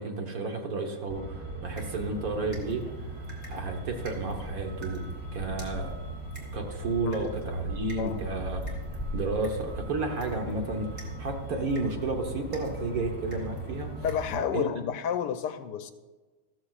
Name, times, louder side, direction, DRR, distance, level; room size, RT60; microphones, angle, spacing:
voice 1, 0.0-3.1 3.5-5.0 5.3-5.9 6.5-8.8 9.1-14.0 14.5-14.7, right 3 dB, 55° right, 2 dB, 1.6 m, -32 dB
Truck, 1.1-14.5, right 1 dB, 15° right, 3.0 m, -38 dB
sound 1, 1.5-2.6 6.6-8.6 12.6-13.5, right 8 dB, 90° right, 1.4 m, -50 dB
sound 2, 1.8-14.5, right 1 dB, 40° right, 2.6 m, -54 dB
voice 2, 14.0-15.9, left 8 dB, 75° left, 9 dB, 1.1 m, -30 dB
14.0 x 13.5 x 2.4 m, 1.3 s
omnidirectional pair, 1.9 m